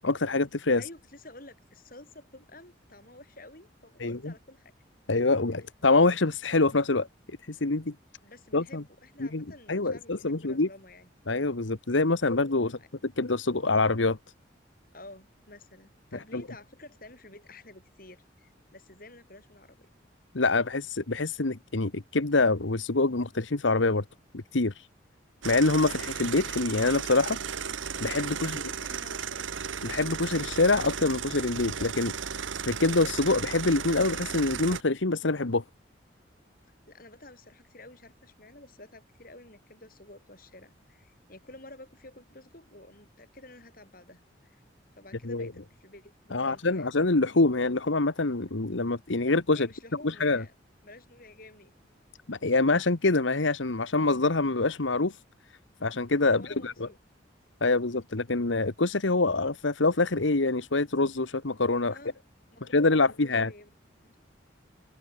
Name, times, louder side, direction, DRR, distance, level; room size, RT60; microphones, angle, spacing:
voice 1, 0.0-0.8 4.0-4.3 5.1-7.9 8.5-8.8 9.2-10.7 11.3-14.2 16.3-16.4 20.3-24.0 24.3-24.9 25.4-27.4 28.0-28.6 29.8-32.1 32.7-35.6 45.2-45.5 46.3-49.7 50.0-50.4 52.3-55.2 55.8-56.9 57.6-62.0 62.6-63.5, left 3 dB, 80° left, 1.4 m, -25 dB
voice 2, 0.8-4.7 5.5-5.6 8.2-11.1 12.6-12.9 14.9-19.9 28.4-29.6 36.9-44.6 45.0-46.9 49.5-50.5 50.8-51.7 56.3-57.0 61.9-62.2 62.5-63.7 64.0-64.2, left 2 dB, 45° left, 8.0 m, -51 dB
sound 1, 25.4-34.8, right 7 dB, 85° right, 1.3 m, -35 dB
head